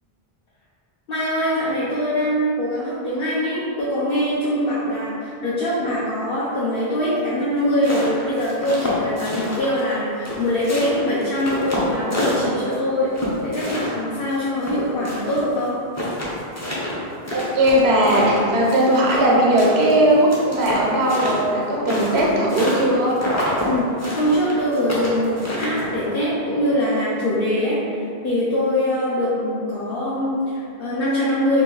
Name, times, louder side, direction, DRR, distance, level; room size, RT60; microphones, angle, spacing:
voice 1, 1.1-15.7 23.6-23.9 24.1-31.6, left 1 dB, 65° left, -9 dB, 0.8 m, -23 dB
sound 1, 7.6-9.9 10.2-12.8 13.1-15.4 15.7-15.8 15.9-19.3 19.6-22.9 23.2-23.7 24.0-26.0, left 1 dB, 20° left, 0.5 m, -27 dB
voice 2, 17.3-23.2, right 1 dB, 85° right, -3 dB, 1.0 m, -18 dB
2.9 x 2.5 x 3.8 m, 2.4 s
omnidirectional pair, 1.1 m